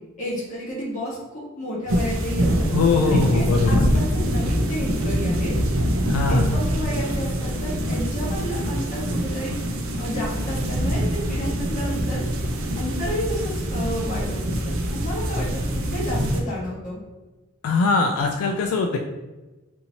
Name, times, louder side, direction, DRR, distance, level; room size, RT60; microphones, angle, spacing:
voice 1, 0.2-2.7 3.1-5.5 6.3-9.6 10.0-12.2 12.7-17.0, equal, 35° left, -6 dB, 1.3 m, -31 dB
sound 1, 1.9-16.4, equal, 65° right, 0.5 m, -24 dB
voice 2, 2.7-3.9 6.1-6.5 17.6-19.0, left 3 dB, 80° left, 4 dB, 0.3 m, -21 dB
4.2 x 2.7 x 2.8 m, 1.1 s
head